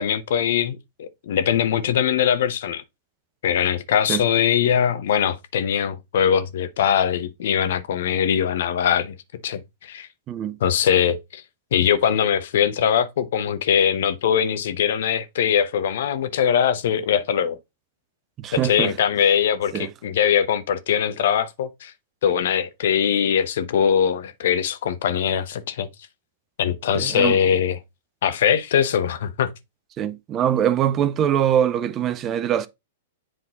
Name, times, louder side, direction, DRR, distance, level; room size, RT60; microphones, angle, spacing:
voice 1, 0.0-2.8 3.4-9.1 9.4-10.1 10.6-11.4 11.7-17.6 18.5-21.9 22.2-25.9 26.6-27.8 28.2-29.5, left 8 dB, 65° left, 0.9 m, -21 dB
voice 2, 18.4-18.9 19.7-19.9 26.9-27.4 30.0-32.7, right 10 dB, 30° right, 0.6 m, -23 dB
7.9 x 3.8 x 4.0 m
hypercardioid pair, 115°, 0 cm